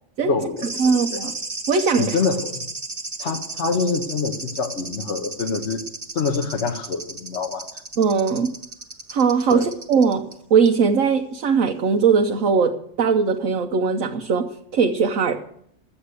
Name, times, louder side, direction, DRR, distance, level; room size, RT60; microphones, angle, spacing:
voice 1, 0.2-1.2 2.0-2.6 3.2-5.8 6.1-7.7 9.5-9.7, left 4 dB, 60° left, 5 dB, 1.3 m, -26 dB
sound 1, 0.6-10.3 10.7-10.8, right 3 dB, 30° right, 1.5 m, -34 dB
voice 2, 0.8-1.3 1.7-2.2 8.0-8.5 9.1-15.5, right 5 dB, 75° right, 3 dB, 1.2 m, -20 dB
12.5 x 8.6 x 8.1 m, 0.69 s
omnidirectional pair, 1.3 m